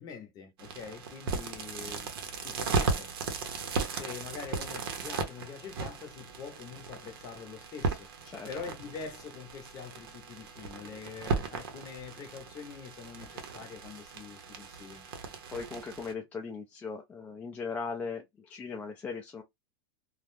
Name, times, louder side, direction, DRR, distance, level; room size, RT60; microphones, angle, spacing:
voice 1, 0.0-2.1 2.4-3.1 3.9-8.1 8.4-15.1, left 6 dB, 30° left, 0.8 m, -44 dB
sound 1, 0.6-16.1, right 4 dB, 80° right, 0.8 m, -36 dB
voice 2, 15.5-19.4, left 5 dB, 10° left, 0.4 m, -38 dB
2.4 x 2.1 x 3.2 m
supercardioid pair, 155°, 12 cm